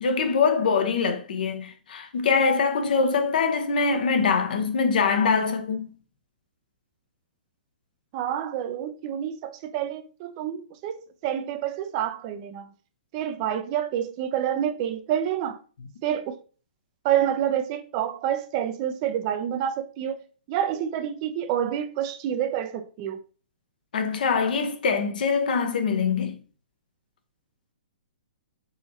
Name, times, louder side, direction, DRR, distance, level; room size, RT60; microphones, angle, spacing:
voice 1, 0.0-5.9 23.9-26.4, left 5 dB, 60° left, 0.9 m, -23 dB
voice 2, 8.1-12.7 13.1-15.6 16.0-16.4 17.0-20.2 20.5-23.2, right 10 dB, 35° right, 0.6 m, -28 dB
4.1 x 3.8 x 2.9 m
hypercardioid pair, 125°, 5 cm